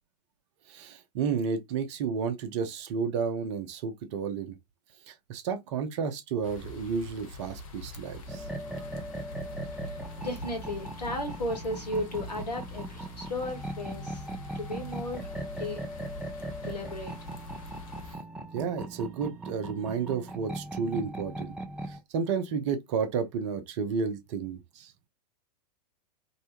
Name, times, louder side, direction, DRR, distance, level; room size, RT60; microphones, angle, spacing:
voice 1, 0.7-4.6 5.1-8.5 18.5-21.5 21.9-24.9, right 6 dB, 45° right, 0.7 m, -32 dB
sound 1, 6.4-18.2, left 2 dB, 55° left, 0.8 m, -44 dB
sound 2, 8.3-22.0, right 1 dB, 5° right, 0.4 m, -39 dB
voice 2, 9.8-14.2 14.5-15.3 15.6-15.8 16.6-17.1, left 1 dB, 75° left, 1.3 m, -35 dB
2.7 x 2.2 x 2.8 m
figure-of-eight pair, 100°, 21 cm